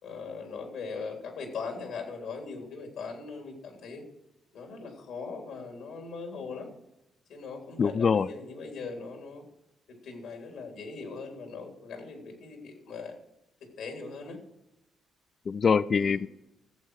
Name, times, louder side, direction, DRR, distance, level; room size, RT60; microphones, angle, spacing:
voice 1, 0.0-4.0 4.5-6.7 7.3-9.4 9.9-13.1 13.8-14.4 15.9-16.2, left 4 dB, 80° left, 2 dB, 3.4 m, -40 dB
voice 2, 7.8-8.3 15.5-16.3, left 6 dB, 45° left, 16 dB, 0.4 m, -24 dB
15.0 x 7.8 x 4.8 m, 0.88 s
cardioid pair, 90°, 0 cm